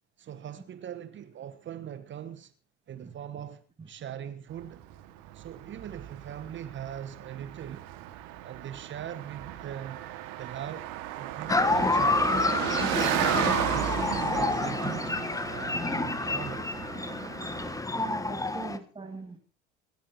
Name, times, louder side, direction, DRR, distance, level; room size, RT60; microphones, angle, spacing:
voice 1, 0.2-2.5 2.9-4.8 5.3-7.9 8.4-10.0 10.4-12.4 13.0-16.7, right 10 dB, 35° right, 1.2 m, -41 dB
Car passing by, 4.6-17.8, right 13 dB, 55° right, 1.9 m, -35 dB
sound 1, 11.5-18.8, left 3 dB, 10° left, 1.2 m, -28 dB
voice 2, 17.9-19.4, right 3 dB, 15° right, 2.5 m, -41 dB
26.0 x 13.0 x 2.9 m
figure-of-eight pair, 65°, 35 cm